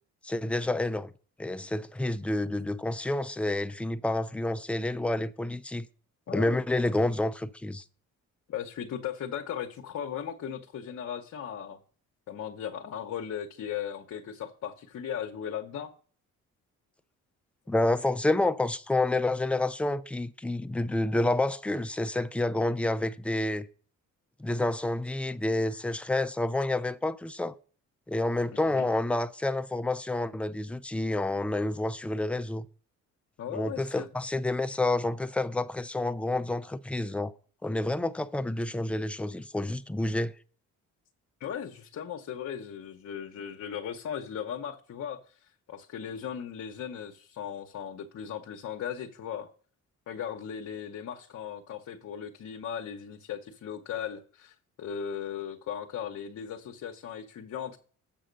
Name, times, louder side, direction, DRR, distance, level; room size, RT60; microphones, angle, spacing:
voice 1, 0.2-1.1 1.4-5.9 6.3-7.8 17.7-23.7 24.4-27.5 28.1-32.6 33.5-37.3 37.6-40.3, left 2 dB, 5° left, 0.4 m, -29 dB
voice 2, 6.3-6.6 8.5-11.8 12.3-15.9 28.5-28.9 33.4-34.1 41.4-49.5 50.1-57.8, left 8 dB, 55° left, 0.9 m, -37 dB
7.5 x 5.7 x 5.1 m
cardioid pair, 90°, 32 cm